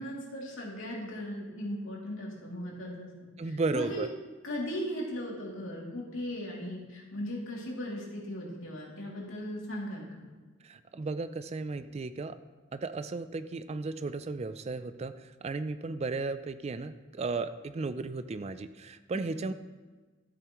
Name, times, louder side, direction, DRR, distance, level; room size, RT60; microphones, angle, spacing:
voice 1, 0.0-3.1 3.4-4.1 4.4-10.2 19.3-19.4, equal, 80° left, -3 dB, 2.7 m, -38 dB
voice 2, 3.4-4.1 10.6-12.4 12.7-19.5, right 3 dB, 30° right, 12 dB, 0.4 m, -35 dB
13.0 x 8.2 x 3.1 m, 1.3 s
head